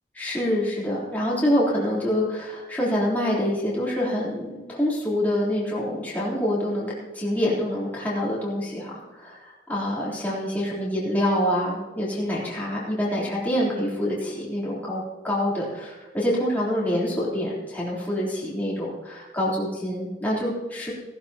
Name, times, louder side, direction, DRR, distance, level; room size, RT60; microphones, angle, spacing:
voice 1, 0.1-20.9, equal, 10° left, -7 dB, 3.5 m, -26 dB
18.0 x 12.0 x 2.9 m, 1.3 s
head